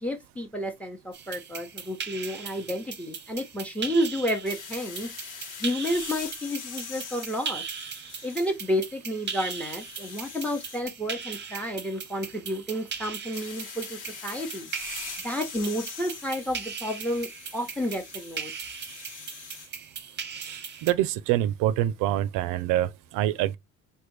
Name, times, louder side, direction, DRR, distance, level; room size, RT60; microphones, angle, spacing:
voice 1, 0.0-5.1 5.6-7.6 8.2-14.7 15.2-18.5, equal, 5° left, 0.8 m, -31 dB
sound 1, 1.1-20.9, right 6 dB, 35° right, 0.7 m, -39 dB
sound 2, 4.5-8.7 9.1-10.8 13.3-19.7, left 6 dB, 75° left, 1.0 m, -43 dB
voice 2, 20.4-23.6, right 13 dB, 80° right, 0.5 m, -26 dB
3.3 x 2.2 x 3.1 m
cardioid pair, 100°, 32 cm